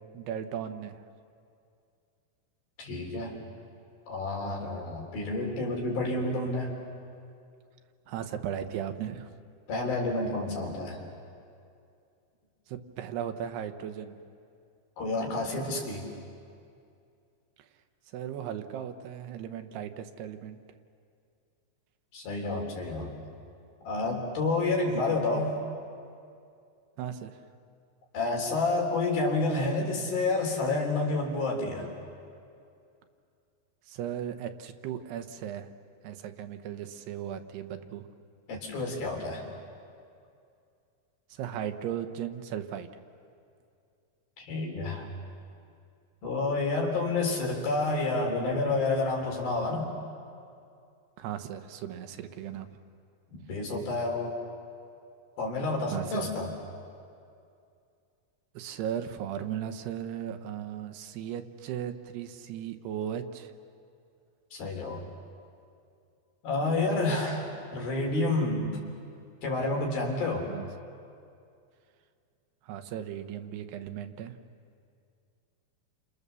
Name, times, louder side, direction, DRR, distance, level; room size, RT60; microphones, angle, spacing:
voice 1, 0.1-1.0 8.1-9.3 12.7-14.2 18.1-20.6 27.0-27.4 33.9-35.7 36.0-38.1 41.3-42.9 51.2-52.7 55.9-56.3 58.5-63.5 70.5-70.7 72.6-74.4, right 9 dB, 85° right, 8 dB, 3.2 m, -36 dB
voice 2, 2.8-3.4 4.1-6.7 9.7-11.1 15.0-16.1 22.1-23.1 23.8-25.6 28.1-31.9 38.5-39.5 44.4-45.1 46.2-49.9 53.3-54.3 55.4-56.5 64.5-65.0 66.4-68.8 69.4-70.5, left 2 dB, 65° left, 1 dB, 5.5 m, -29 dB
30.0 x 27.5 x 7.0 m, 2.4 s
omnidirectional pair, 4.6 m